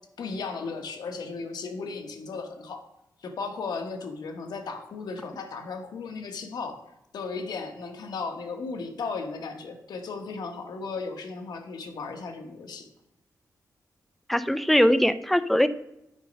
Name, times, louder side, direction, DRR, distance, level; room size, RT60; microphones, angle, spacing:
voice 1, 0.2-2.8 3.2-6.8 7.1-12.9, left 4 dB, 85° left, 6 dB, 1.2 m, -35 dB
voice 2, 14.3-15.7, equal, ahead, 14 dB, 0.5 m, -21 dB
9.0 x 5.2 x 5.2 m, 0.84 s
cardioid pair, 90°, 7 cm